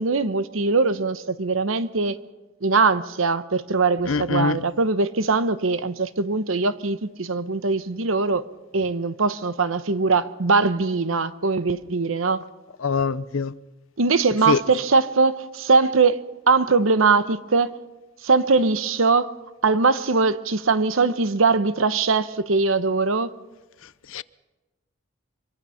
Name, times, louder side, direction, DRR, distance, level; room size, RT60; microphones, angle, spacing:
voice 1, 0.0-2.2 2.6-8.4 8.7-12.4 14.0-16.2 16.5-17.7 18.2-19.3 19.6-23.3, right 4 dB, 75° right, 0.9 m, -21 dB
voice 2, 4.1-4.6 12.8-13.5 14.5-14.6 24.1-24.2, left 5 dB, 75° left, 0.6 m, -23 dB
25.0 x 22.5 x 5.7 m
head